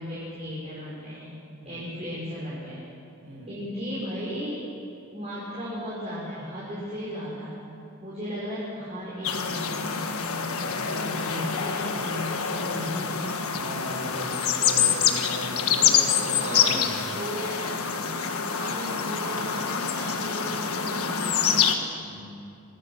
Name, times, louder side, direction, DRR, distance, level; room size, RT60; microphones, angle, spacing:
voice 1, 0.0-1.4 1.6-2.8 3.5-4.6 5.1-7.7 8.0-13.3 16.3-18.1 18.5-21.6, equal, 30° right, -8 dB, 5.1 m, -36 dB
voice 2, 3.2-3.5 13.5-17.2 22.1-22.5, equal, 80° right, -1 dB, 6.3 m, -37 dB
sound 1, 9.2-21.7, left 7 dB, 75° left, 1.5 m, -26 dB
24.5 x 15.5 x 7.2 m, 2.5 s
head